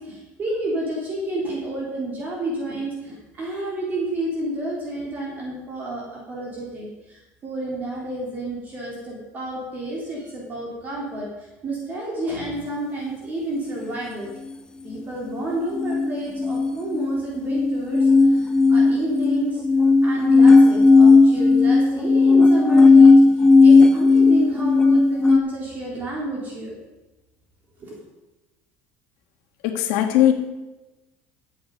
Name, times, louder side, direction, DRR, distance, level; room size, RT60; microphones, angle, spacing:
voice 1, 0.0-14.3 14.8-19.6 20.0-23.1 23.6-26.7 27.8-27.9, right 1 dB, 30° right, -3 dB, 3.4 m, -30 dB
sound 1, 15.7-25.4, left 3 dB, 15° left, 0.7 m, -14 dB
voice 2, 29.6-30.3, left 11 dB, 85° left, 5 dB, 1.7 m, -18 dB
15.0 x 8.4 x 5.3 m, 1.1 s
cardioid pair, 145°, 6 cm